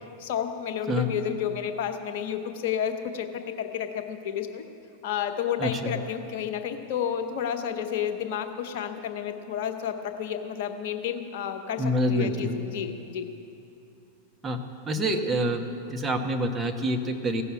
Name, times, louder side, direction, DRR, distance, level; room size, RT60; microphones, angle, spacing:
voice 1, 0.2-4.7 5.0-13.3, left 8 dB, 50° left, 6 dB, 1.0 m, -31 dB
voice 2, 5.6-5.9 11.8-12.6 14.4-14.6 14.9-15.6 15.9-17.4, equal, 15° right, 3 dB, 1.1 m, -26 dB
16.0 x 6.9 x 8.4 m, 2.8 s
figure-of-eight pair, 90°, 0 cm